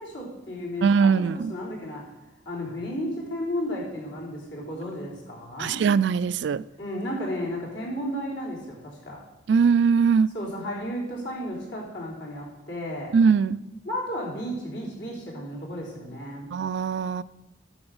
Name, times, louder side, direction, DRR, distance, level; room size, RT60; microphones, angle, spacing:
voice 1, 0.0-2.1 2.5-5.8 6.8-9.2 10.3-13.1 13.9-16.5, equal, 65° left, 3.6 m, -33 dB
voice 2, 0.8-1.5 5.6-6.6 9.5-10.3 13.1-13.6 16.5-17.2, right 6 dB, 65° right, 0.3 m, -21 dB
9.7 x 7.0 x 6.4 m
head